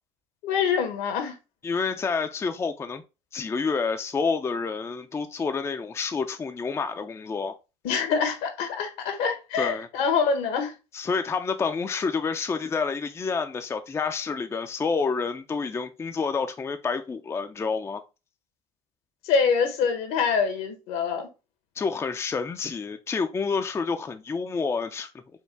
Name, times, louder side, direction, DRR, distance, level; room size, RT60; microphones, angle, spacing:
voice 1, 0.4-1.3 7.8-10.7 19.3-21.3, left 6 dB, 75° left, 1.1 m, -25 dB
voice 2, 1.6-3.0 3.3-7.6 9.6-9.9 10.9-18.0 21.8-25.1, left 5 dB, 20° left, 0.4 m, -28 dB
4.4 x 2.3 x 3.4 m
supercardioid pair, 80°, 15 cm